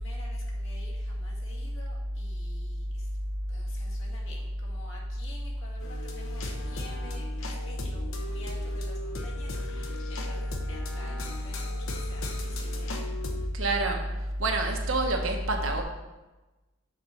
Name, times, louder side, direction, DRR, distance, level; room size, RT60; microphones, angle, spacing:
voice 1, 0.0-3.1 3.5-13.0 13.3-13.5, left 2 dB, 70° left, -4 dB, 1.9 m, -50 dB
sound 1, 5.8-13.5, left 2 dB, 85° left, 0.9 m, -39 dB
voice 2, 13.5-14.0 14.4-15.8, right 2 dB, 80° right, 3 dB, 1.0 m, -27 dB
6.6 x 4.3 x 5.2 m, 1.1 s
head